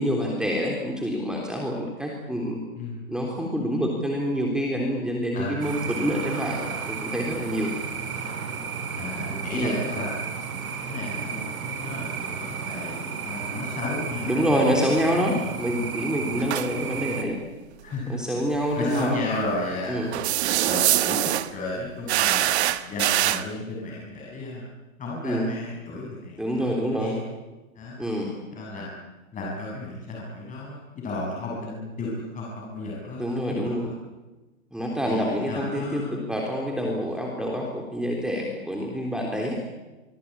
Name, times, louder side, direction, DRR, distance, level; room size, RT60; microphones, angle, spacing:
voice 1, 0.0-2.6 3.1-7.7 9.5-9.7 14.3-17.4 18.1-19.2 19.9-20.1 25.2-25.5 26.4-27.2 28.0-28.3 33.2-33.9 34.7-39.6, equal, ahead, 0 dB, 3.5 m, -27 dB
voice 2, 2.8-3.1 5.3-5.9 8.9-10.2 10.9-14.4 14.7-14.9 16.2-16.5 17.8-18.2 18.7-20.0 20.6-24.7 25.0-27.2 27.8-28.0 28.5-28.9 29.3-33.2 33.6-33.7 35.0-36.2 36.9-37.1, left 2 dB, 20° left, -3 dB, 7.0 m, -33 dB
sound 1, 5.6-17.2, right 6 dB, 85° right, 5.1 m, -33 dB
sound 2, 16.4-16.7 18.9-19.0 20.1-21.5 22.1-23.4, right 14 dB, 50° right, 1.5 m, -23 dB
24.5 x 24.0 x 8.7 m, 1.1 s
hypercardioid pair, 135°, 42 cm